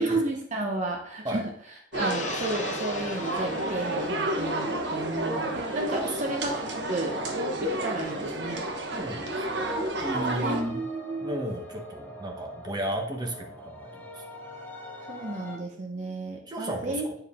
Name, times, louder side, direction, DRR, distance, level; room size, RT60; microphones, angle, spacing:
voice 1, 0.0-1.4 2.0-7.2 7.6-8.6 10.4-11.4 15.1-17.1, right 2 dB, 40° right, 1 dB, 0.9 m, -32 dB
Gong, 1.9-8.5 8.9-9.0, left 3 dB, 40° left, 0.8 m, -41 dB
sound 1, 1.9-10.6, right 1 dB, 70° right, 1.1 m, -30 dB
voice 2, 5.9-6.2 8.9-9.6 10.0-10.8 11.2-14.2 15.0-15.1 16.5-17.2, right 1 dB, 25° right, 1 dB, 1.2 m, -34 dB
sound 2, 9.2-15.6, equal, 10° left, 0.9 m, -44 dB
8.8 x 4.7 x 3.7 m, 0.66 s
head